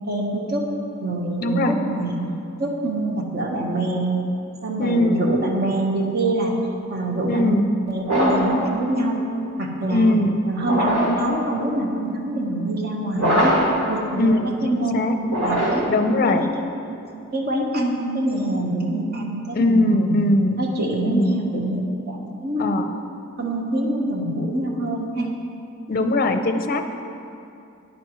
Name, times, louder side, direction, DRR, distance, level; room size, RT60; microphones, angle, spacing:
voice 1, 0.1-0.7 1.0-2.2 2.6-4.2 4.6-6.5 6.9-7.6 7.9-9.2 9.6-10.2 10.5-13.6 13.9-14.4 14.6-15.9 16.2-16.3 16.8-17.0 17.3-20.2 20.6-22.7 23.4-25.3, right 1 dB, 50° right, 0 dB, 1.3 m, -25 dB
voice 2, 1.4-1.8 4.8-5.3 7.3-7.7 9.9-10.4 14.2-15.1 15.9-16.5 19.5-20.6 21.1-21.4 22.6-23.0 25.9-26.8, left 1 dB, 45° left, 7 dB, 0.6 m, -20 dB
sound 1, 8.0-8.6 10.6-11.2 13.1-13.8 15.2-16.0, equal, 70° right, 2.4 m, -21 dB
12.5 x 10.0 x 3.2 m, 2.6 s
head